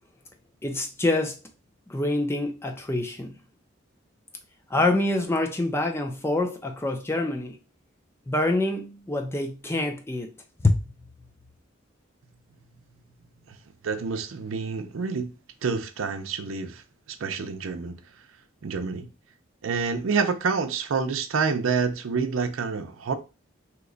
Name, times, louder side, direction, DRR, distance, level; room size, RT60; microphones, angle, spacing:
voice 1, 0.6-1.4 1.9-3.4 4.7-7.6 8.3-10.3 10.6-10.8, left 2 dB, 15° left, 0.4 m, -26 dB
voice 2, 13.8-15.3 15.6-16.8 17.1-18.0 18.6-19.1 19.6-23.1, right 5 dB, 85° right, 0.5 m, -28 dB
2.9 x 2.2 x 3.8 m
head